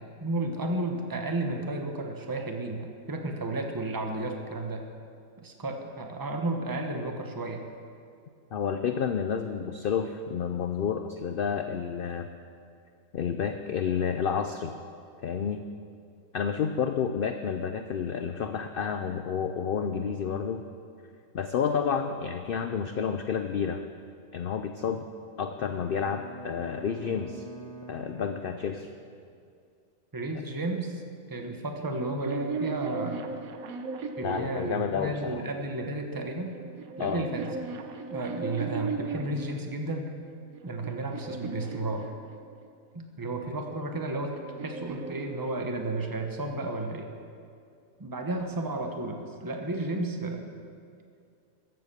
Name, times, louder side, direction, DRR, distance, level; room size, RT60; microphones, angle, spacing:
voice 1, 0.2-4.9 5.4-7.7 30.1-31.0 31.3-33.2 34.2-36.6 37.0-37.5 38.1-40.1 40.6-42.1 42.9-44.3 44.6-47.1 48.0-50.5, right 2 dB, 15° right, 4 dB, 0.9 m, -32 dB
voice 2, 8.5-12.3 13.1-14.7 15.2-15.6 16.3-20.6 21.3-23.8 24.3-25.1 25.4-27.5 27.9-28.9 34.2-35.4 37.0-37.3, left 7 dB, 65° left, 7 dB, 0.5 m, -30 dB
Bowed string instrument, 25.6-29.2, right 3 dB, 50° right, 1.4 m, -46 dB
sound 1, 31.9-35.3 36.2-39.6 40.2-42.7 43.7-46.1, right 4 dB, 75° right, 1.3 m, -38 dB
14.0 x 7.9 x 6.8 m, 2.4 s
omnidirectional pair, 1.5 m